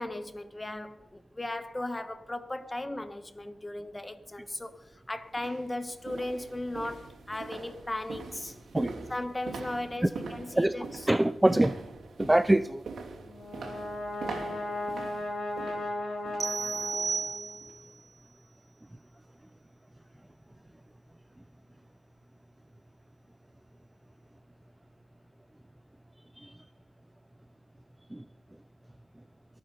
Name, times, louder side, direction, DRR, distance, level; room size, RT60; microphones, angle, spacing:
voice 1, 0.0-8.6 9.1-11.1, left 1 dB, 20° left, 1.2 m, -37 dB
sound 1, 4.6-4.7 5.3-16.6 16.9-17.2 17.6-17.7, right 4 dB, 85° right, 2.8 m, -43 dB
voice 2, 11.1-11.8 12.2-12.8 26.4-26.5 28.1-28.2, right 1 dB, 10° right, 0.4 m, -24 dB
Brass instrument, 13.3-17.7, left 1 dB, 60° left, 4.5 m, -36 dB
sound 2, 16.4-17.9, right 5 dB, 50° right, 0.8 m, -33 dB
23.5 x 9.0 x 5.4 m
cardioid pair, 90°, 0 cm